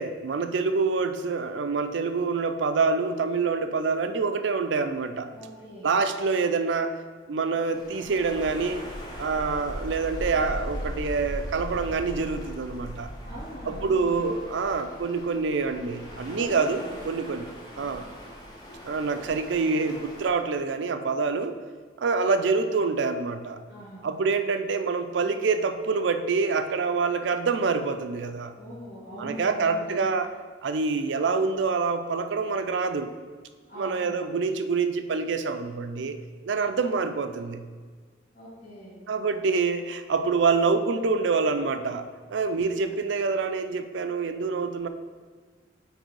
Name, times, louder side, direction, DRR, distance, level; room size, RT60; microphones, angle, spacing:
voice 1, 0.0-5.3 5.8-7.0 7.3-8.8 9.2-13.1 13.7-17.5 17.8-18.1 18.8-21.6 22.0-23.6 24.0-28.6 29.2-30.3 30.6-33.1 33.8-36.2 36.5-37.7 39.1-44.9, right 4 dB, 80° right, 9 dB, 0.4 m, -26 dB
voice 2, 5.3-5.9 13.2-14.3 16.3-16.9 17.7-17.9 23.7-24.1 28.5-30.0 33.7-34.0 38.3-39.0, equal, 50° left, -11 dB, 1.9 m, -42 dB
sound 1, 7.7-20.3, equal, 20° left, 1.0 m, -39 dB
6.6 x 4.5 x 4.6 m, 1.5 s
head